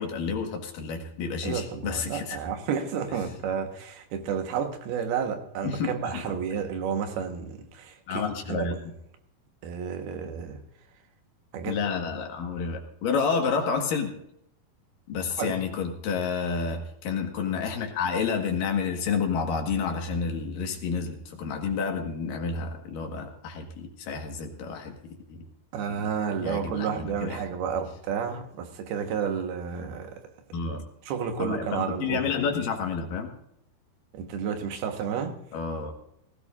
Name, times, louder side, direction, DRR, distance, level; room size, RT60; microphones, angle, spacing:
voice 1, 0.0-2.4 5.6-6.4 8.1-8.8 11.7-14.1 15.1-25.5 26.4-27.4 30.5-30.8 31.4-33.3 35.5-35.9, left 5 dB, 65° left, 3 dB, 3.1 m, -30 dB
voice 2, 1.4-8.8 9.6-10.6 11.5-11.8 15.4-15.5 25.7-30.2 31.0-32.3 34.1-35.4, right 7 dB, 75° right, 5 dB, 3.2 m, -31 dB
18.5 x 16.5 x 2.6 m, 0.74 s
omnidirectional pair, 4.7 m